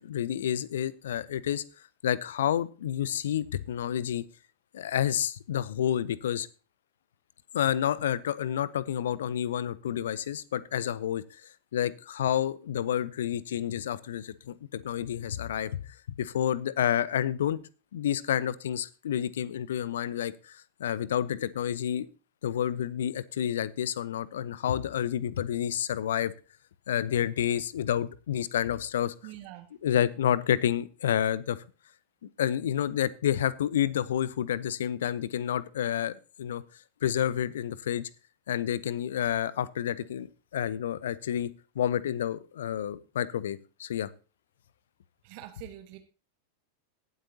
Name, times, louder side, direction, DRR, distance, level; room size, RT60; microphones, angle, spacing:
voice 1, 0.0-1.6 2.0-4.2 4.7-6.5 7.5-15.8 16.1-17.6 17.9-22.1 22.4-26.3 26.9-29.1 29.8-31.6 32.4-36.6 37.0-38.1 38.5-40.3 40.5-44.1, left 10 dB, 60° left, 20 dB, 0.7 m, -29 dB
voice 2, 29.2-29.7 45.2-46.0, right 15 dB, 45° right, 8 dB, 1.2 m, -44 dB
18.5 x 8.1 x 2.8 m, 0.34 s
figure-of-eight pair, 90°, 0 cm